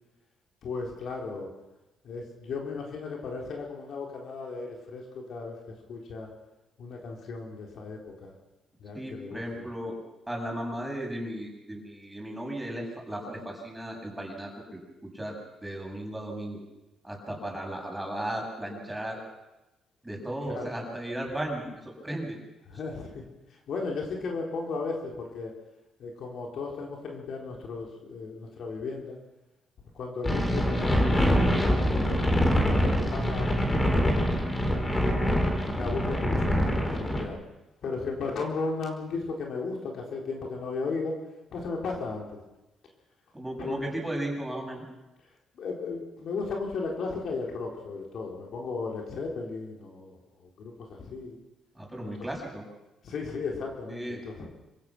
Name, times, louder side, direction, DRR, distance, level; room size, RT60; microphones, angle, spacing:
voice 1, 0.6-1.5 2.0-5.6 5.9-6.3 6.8-8.3 8.8-9.7 20.5-20.7 22.7-23.2 23.5-25.5 26.0-29.2 29.9-34.3 34.9-35.4 35.7-37.4 37.8-41.2 41.5-42.3 43.6-43.8 45.5-51.4 52.0-52.1 53.0-54.5, left 4 dB, 65° left, 0 dB, 4.1 m, -35 dB
voice 2, 8.9-9.9 10.3-14.8 15.1-15.3 15.6-16.6 17.0-19.2 20.0-22.4 43.3-44.8 51.7-52.6 53.9-54.2, right 1 dB, 10° right, -1 dB, 7.7 m, -35 dB
sound 1, 30.2-37.2, equal, 25° left, 4.1 m, -25 dB
26.5 x 16.0 x 6.2 m, 0.99 s
cardioid pair, 90°, 0 cm